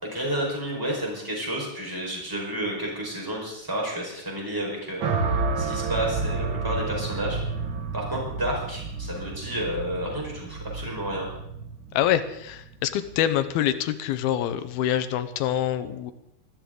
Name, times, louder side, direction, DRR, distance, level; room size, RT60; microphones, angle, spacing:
voice 1, 0.0-7.4 7.9-11.4, right 1 dB, 5° right, -2 dB, 4.6 m, -31 dB
sound 1, 5.0-13.3, right 4 dB, 90° right, 1.0 m, -30 dB
voice 2, 11.9-16.1, left 11 dB, 80° left, 11 dB, 2.7 m, -25 dB
20.0 x 15.0 x 3.9 m, 0.78 s
omnidirectional pair, 4.5 m